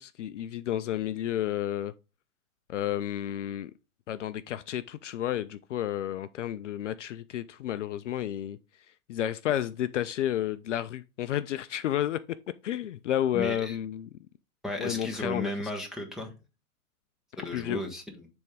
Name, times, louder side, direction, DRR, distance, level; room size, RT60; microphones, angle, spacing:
voice 1, 0.0-1.9 2.7-3.7 4.1-8.6 9.1-12.2 12.6-14.1 14.8-15.5 17.5-17.8, left 11 dB, 55° left, 0.5 m, -31 dB
voice 2, 13.3-13.7 14.6-16.3 17.4-18.2, left 1 dB, ahead, 0.8 m, -34 dB
10.5 x 3.5 x 3.3 m
hypercardioid pair, 125°, 45 cm